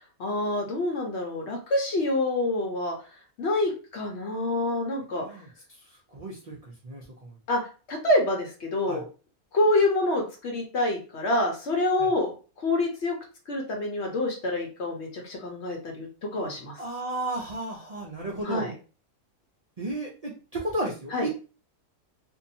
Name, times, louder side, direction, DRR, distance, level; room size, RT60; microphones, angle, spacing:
voice 1, 0.2-2.9 3.4-5.2 7.5-7.6 7.9-9.0 9.5-12.3 12.6-13.2 13.5-16.1 16.3-16.7 18.4-18.7 21.1-21.3, left 2 dB, 60° left, 1 dB, 0.9 m, -26 dB
voice 2, 5.2-5.5 6.1-7.3 8.9-9.0 12.0-12.1 16.4-18.7 19.8-21.5, right 2 dB, 70° right, -3 dB, 0.3 m, -34 dB
2.7 x 2.3 x 2.6 m, 0.35 s
omnidirectional pair, 1.5 m